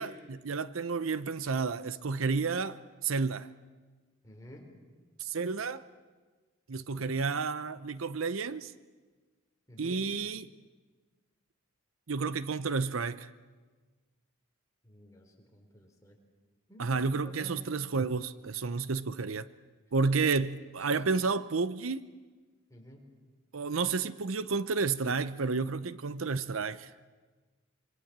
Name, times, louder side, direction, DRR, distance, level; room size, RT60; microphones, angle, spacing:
voice 1, 0.0-2.7 3.0-3.5 5.2-5.8 6.7-8.7 9.8-10.5 12.1-13.3 16.8-19.5 19.9-22.1 23.5-26.9, right 4 dB, 80° right, 0.7 m, -31 dB
voice 2, 4.2-4.7 9.7-10.0 14.8-16.2 16.7-17.6 20.8-21.3 22.7-23.1, equal, 15° left, 3.9 m, -51 dB
26.0 x 24.5 x 7.4 m
head